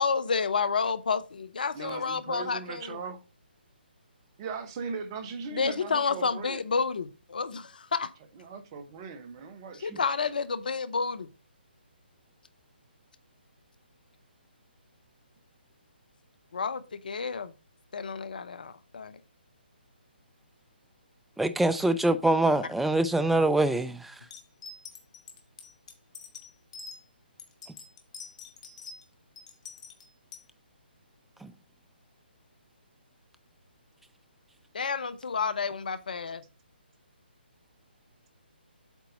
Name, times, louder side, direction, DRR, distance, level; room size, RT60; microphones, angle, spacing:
voice 1, 0.0-3.0 5.5-8.1 9.8-11.3 16.5-17.5 17.9-19.2 34.7-36.4, left 5 dB, 55° left, 0.7 m, -30 dB
voice 2, 1.7-3.2 4.4-6.6 8.3-10.3, right 5 dB, 25° right, 1.0 m, -39 dB
voice 3, 21.4-24.2 31.4-31.5, right 2 dB, ahead, 0.4 m, -24 dB
sound 1, 24.3-27.0 27.4-29.0 29.4-30.5, left 4 dB, 35° left, 1.6 m, -45 dB
8.2 x 4.0 x 5.2 m
figure-of-eight pair, 140°, 6 cm